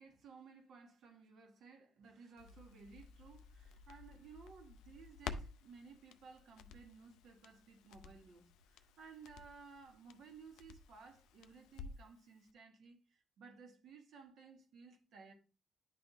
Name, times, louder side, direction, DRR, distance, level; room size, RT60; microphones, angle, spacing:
voice 1, 0.0-15.3, right 5 dB, 70° right, 1.4 m, -58 dB
Crackle, 2.4-12.2 12.5-12.6, left 6 dB, 90° left, 0.4 m, -53 dB
10.5 x 3.4 x 2.7 m
cardioid pair, 90°, 0 cm